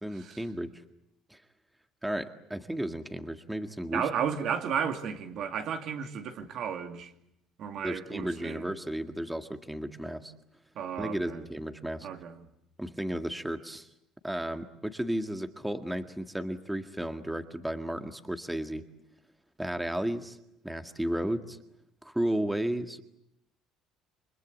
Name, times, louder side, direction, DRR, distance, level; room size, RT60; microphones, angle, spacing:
voice 1, 0.0-0.7 1.3-1.4 2.0-4.0 7.8-10.3 11.0-12.1 12.8-13.9 14.2-18.8 19.6-20.4 20.6-21.6 22.0-23.0, right 1 dB, 5° right, 1.9 m, -33 dB
voice 2, 3.9-7.1 7.6-8.6 10.7-11.4 12.0-12.5, right 7 dB, 60° right, 2.6 m, -33 dB
29.5 x 24.0 x 8.4 m
supercardioid pair, 100°, 0 cm